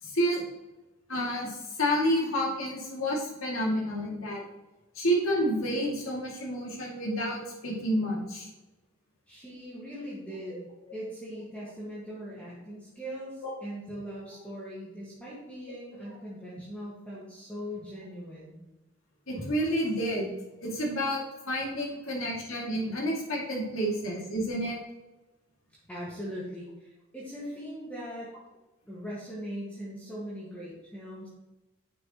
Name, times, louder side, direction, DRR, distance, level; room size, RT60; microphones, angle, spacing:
voice 1, 0.0-0.4 1.1-4.4 4.9-8.5 19.3-20.3 20.6-21.2 21.5-24.8, equal, 70° left, -3 dB, 2.6 m, -29 dB
voice 2, 9.3-18.6 25.9-28.3 28.9-31.3, equal, 5° left, -8 dB, 1.9 m, -40 dB
9.5 x 6.8 x 3.1 m, 1.0 s
head